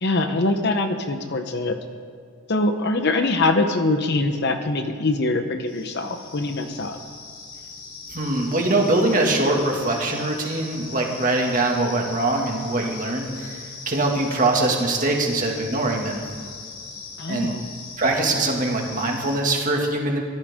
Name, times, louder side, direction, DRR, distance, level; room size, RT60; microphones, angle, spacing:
voice 1, 0.0-1.8 2.5-7.0 17.2-17.7, left 2 dB, 50° left, 7 dB, 1.0 m, -23 dB
sound 1, 5.7-19.4, left 4 dB, 80° left, 4.4 m, -39 dB
voice 2, 8.1-16.2 17.3-17.5 18.0-20.2, right 2 dB, 35° right, 0 dB, 2.2 m, -23 dB
24.0 x 15.0 x 3.8 m, 2.2 s
head